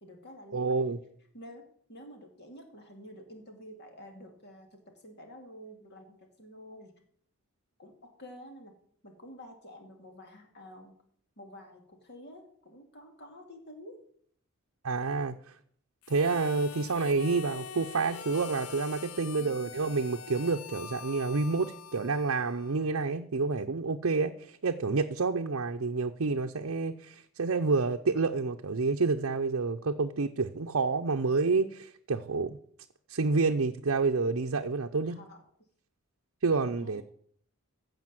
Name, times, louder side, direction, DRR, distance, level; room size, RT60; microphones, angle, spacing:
voice 1, 0.0-1.0 1.3-7.0 7.8-8.8 9.0-11.0 11.4-14.0 19.4-19.8 35.0-35.4 36.6-37.0, equal, 50° left, 3 dB, 2.6 m, -50 dB
voice 2, 0.5-1.0 14.8-15.3 16.1-32.6 33.1-35.2 36.4-37.0, right 4 dB, 65° right, 4 dB, 0.6 m, -29 dB
Harmonica, 16.0-23.0, left 7 dB, 75° left, 0.6 m, -44 dB
15.5 x 5.2 x 7.5 m, 0.63 s
head